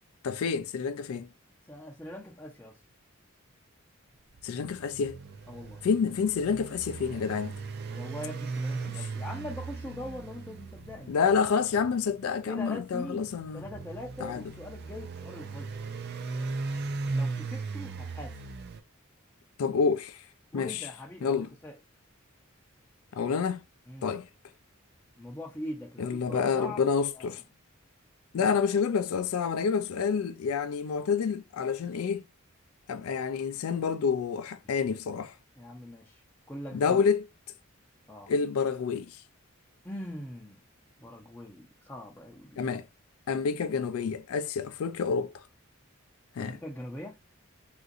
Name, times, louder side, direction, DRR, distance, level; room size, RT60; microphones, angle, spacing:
voice 1, 0.2-1.3 4.4-5.2 5.8-7.5 8.9-9.0 11.1-13.7 14.2-14.4 19.6-20.2 20.5-20.9 21.2-21.5 23.1-23.6 24.0-24.3 26.0-27.4 28.3-32.2 32.9-35.3 36.7-37.3 38.3-39.2 42.6-42.9 43.3-45.4 46.4-46.6, left 6 dB, 85° left, 0.4 m, -28 dB
voice 2, 1.7-2.8 5.5-5.8 7.9-11.2 12.5-13.3 13.5-15.7 17.1-18.4 20.5-21.8 23.9-24.1 25.2-26.9 27.1-27.3 28.4-28.6 35.6-36.2 36.5-37.0 38.1-38.3 39.8-40.6 41.0-42.6 46.4-47.2, left 1 dB, 10° left, 0.5 m, -42 dB
sound 1, 4.3-18.8, right 3 dB, 50° right, 0.4 m, -38 dB
3.6 x 2.5 x 2.4 m
head